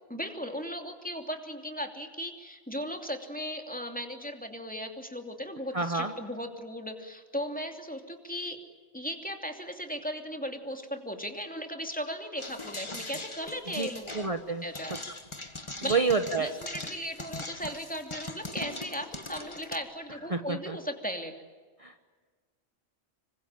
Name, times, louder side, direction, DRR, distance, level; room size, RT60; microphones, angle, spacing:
voice 1, 0.1-8.6 8.9-14.1 14.6-15.0 15.8-16.0 16.4-21.3, equal, 5° left, 4 dB, 2.8 m, -37 dB
voice 2, 5.7-6.1 13.8-13.9 14.1-14.6 15.9-16.5 20.3-20.8 21.8-22.1, right 4 dB, 30° right, 7 dB, 1.2 m, -28 dB
sound 1, 12.4-19.8, left 2 dB, 25° left, 1.7 m, -41 dB
26.5 x 24.5 x 9.0 m, 1.5 s
omnidirectional pair, 1.1 m